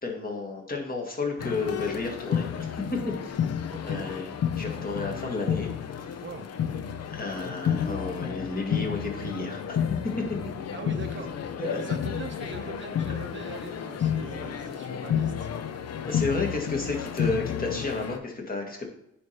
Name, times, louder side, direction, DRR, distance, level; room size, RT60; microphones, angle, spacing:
voice 1, 0.0-3.4 3.8-6.2 7.1-9.8 10.0-10.4 11.6-11.8 16.1-18.9, left 3 dB, 30° left, 0 dB, 1.8 m, -32 dB
sound 1, 1.4-18.2, left 8 dB, 55° left, 0.7 m, -31 dB
voice 2, 3.7-4.1 6.2-6.5 10.7-15.5, right 5 dB, 40° right, 6 dB, 0.8 m, -42 dB
9.8 x 3.3 x 4.3 m, 0.78 s
cardioid pair, 90°, 30 cm